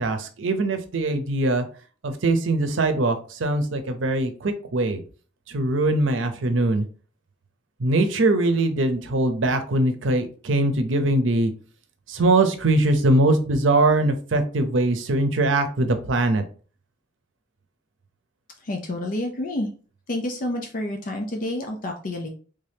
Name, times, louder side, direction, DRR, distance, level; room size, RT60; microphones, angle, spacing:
voice 1, 0.0-1.6 2.0-5.0 5.5-6.9 7.8-11.5 12.1-16.4, right 2 dB, 85° right, 8 dB, 0.6 m, -22 dB
voice 2, 18.6-19.7 20.1-22.3, left 1 dB, 45° left, 3 dB, 0.5 m, -29 dB
3.4 x 2.7 x 3.4 m, 0.39 s
head